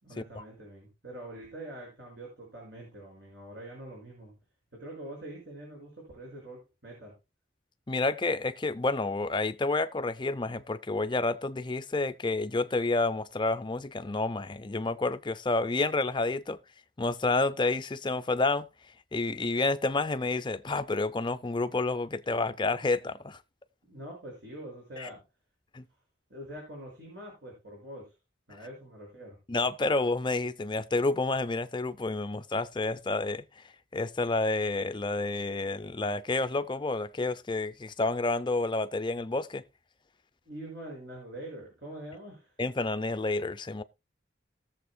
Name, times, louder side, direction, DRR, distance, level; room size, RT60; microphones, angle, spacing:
voice 1, 0.0-4.3 4.7-7.1 23.8-25.2 26.3-28.1 28.5-29.4 40.5-42.5, right 1 dB, 65° right, 5.8 m, -44 dB
voice 2, 7.9-16.6 17.0-18.7 19.1-23.4 25.0-25.1 25.7-25.8 29.5-33.4 33.9-39.6 42.6-43.8, left 3 dB, 25° left, 0.6 m, -29 dB
19.5 x 7.3 x 2.3 m
head